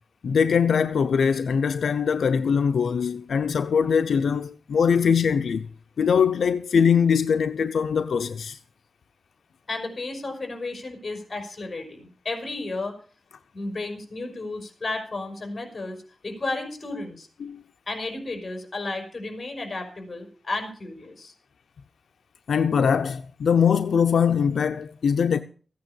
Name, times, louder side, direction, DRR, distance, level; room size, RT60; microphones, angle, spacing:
voice 1, 0.2-5.7 6.0-8.6 17.4-17.6 22.5-25.4, left 6 dB, 80° left, 0.7 m, -22 dB
voice 2, 9.7-13.0 13.5-17.3 17.9-21.3, left 2 dB, 30° left, 5.1 m, -33 dB
15.0 x 9.4 x 7.0 m
wide cardioid pair, 140°, 0 cm